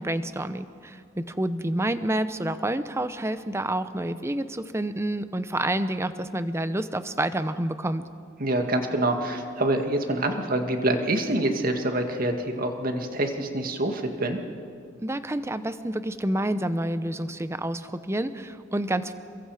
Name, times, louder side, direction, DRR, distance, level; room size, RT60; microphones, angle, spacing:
voice 1, 0.0-8.0 15.0-19.1, right 1 dB, 15° right, 12 dB, 0.7 m, -28 dB
voice 2, 8.4-14.4, right 1 dB, 45° right, 4 dB, 2.0 m, -26 dB
29.0 x 22.5 x 4.9 m, 2.3 s
head